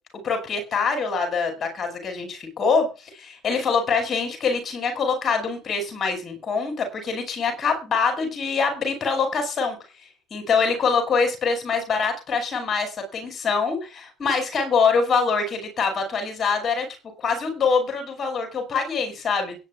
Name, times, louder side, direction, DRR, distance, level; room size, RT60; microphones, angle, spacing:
voice 1, 0.2-9.8 10.3-16.9 17.2-19.6, left 5 dB, 40° left, 5 dB, 6.0 m, -24 dB
22.0 x 10.5 x 2.4 m, 0.31 s
hypercardioid pair, 65°, 0 cm